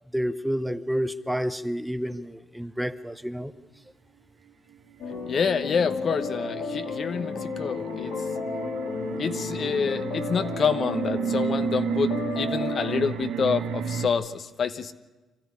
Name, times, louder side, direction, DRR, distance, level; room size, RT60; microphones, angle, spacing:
voice 1, 0.1-3.5, equal, 5° right, 11 dB, 0.8 m, -29 dB
sound 1, 5.0-13.1, left 4 dB, 75° left, 2.6 m, -33 dB
sound 2, 5.1-14.1, right 8 dB, 80° right, 1.6 m, -32 dB
voice 2, 5.3-8.1 9.2-14.9, left 6 dB, 50° left, 10 dB, 1.0 m, -27 dB
25.0 x 14.0 x 9.7 m, 1.2 s
cardioid pair, 90°, 0 cm